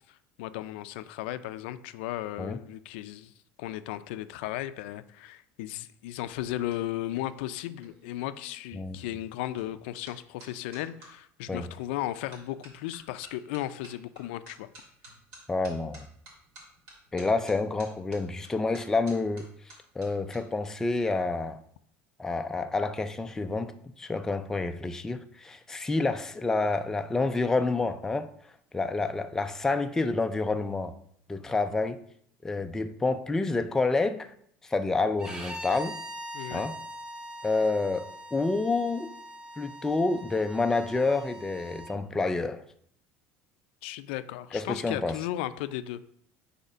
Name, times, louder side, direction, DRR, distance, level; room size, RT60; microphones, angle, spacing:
voice 1, 0.1-3.3 3.6-14.7 36.3-36.7 43.8-46.0, left 14 dB, 90° left, 0.4 m, -35 dB
sound 1, 6.1-11.1 11.7-12.0 12.3-20.4 20.7-21.1, right 1 dB, 70° right, 2.6 m, -53 dB
voice 2, 15.5-16.1 17.1-19.5 20.0-21.6 22.2-23.7 24.0-28.3 28.7-30.9 31.3-32.0 32.4-34.3 34.6-36.0 36.5-36.8 37.4-39.1 39.6-42.6 44.5-45.2, left 3 dB, 10° left, 0.3 m, -28 dB
Bowed string instrument, 35.2-41.9, equal, 15° right, 0.8 m, -42 dB
5.3 x 4.2 x 4.9 m
cardioid pair, 150°, 6 cm